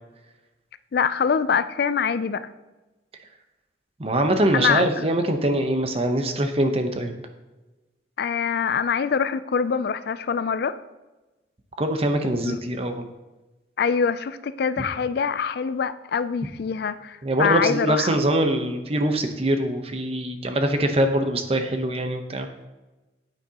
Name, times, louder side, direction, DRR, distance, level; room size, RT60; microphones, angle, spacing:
voice 1, 0.9-2.5 4.5-5.0 8.2-10.8 12.4-12.6 13.8-18.2, left 6 dB, 60° left, 14 dB, 0.4 m, -24 dB
voice 2, 4.0-7.1 11.8-13.0 17.2-22.5, right 1 dB, 35° right, 6 dB, 0.8 m, -23 dB
9.2 x 9.0 x 2.9 m, 1.1 s
head